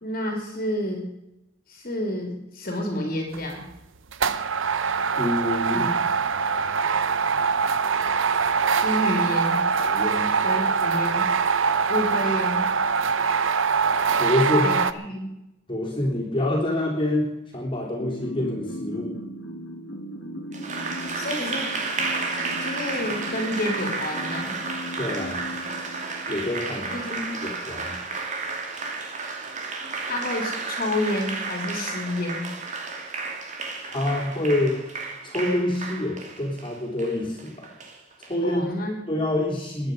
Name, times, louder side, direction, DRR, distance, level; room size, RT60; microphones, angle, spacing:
voice 1, 0.0-1.1 1.7-3.6 5.7-6.0 8.8-9.6 10.4-11.2 11.9-12.6 14.6-15.3 21.1-21.7 22.6-24.5 26.9-27.4 30.0-32.5 38.4-39.1, left 1 dB, 45° left, 2 dB, 3.1 m, -29 dB
sound 1, 3.3-3.6 4.1-14.9, right 5 dB, 80° right, 0.8 m, -23 dB
voice 2, 5.1-5.9 9.7-10.4 14.2-14.7 15.7-19.2 25.0-25.5 26.3-27.0 27.4-28.0 33.9-34.8 35.2-37.7 38.2-38.7 39.1-39.9, left 1 dB, 25° left, -2 dB, 3.5 m, -26 dB
sound 2, 18.0-26.8, equal, 70° left, 1.9 m, -38 dB
Applause, 20.5-38.3, right 4 dB, 40° right, 2.3 m, -32 dB
22.5 x 9.8 x 5.4 m, 0.90 s
head